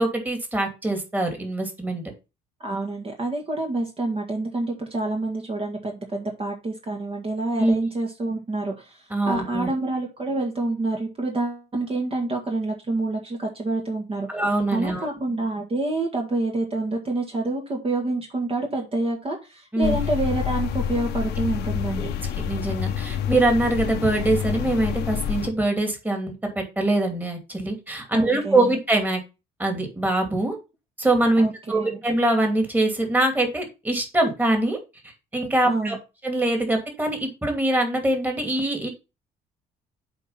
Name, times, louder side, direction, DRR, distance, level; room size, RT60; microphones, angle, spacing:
voice 1, 0.0-2.0 7.6-7.8 9.1-9.7 14.3-15.1 19.7-19.9 22.0-22.1 22.4-29.2 29.6-30.6 31.0-34.8 35.3-36.0 36.2-38.9, right 2 dB, 10° right, 3 dB, 2.6 m, -23 dB
voice 2, 2.6-14.3 14.7-22.1 28.1-28.7 31.4-32.0 35.6-36.0, right 2 dB, 35° right, 0 dB, 2.0 m, -27 dB
sound 1, 19.8-25.5, left 9 dB, 80° left, 1.1 m, -28 dB
7.8 x 4.5 x 5.6 m, 0.28 s
cardioid pair, 110°, 17 cm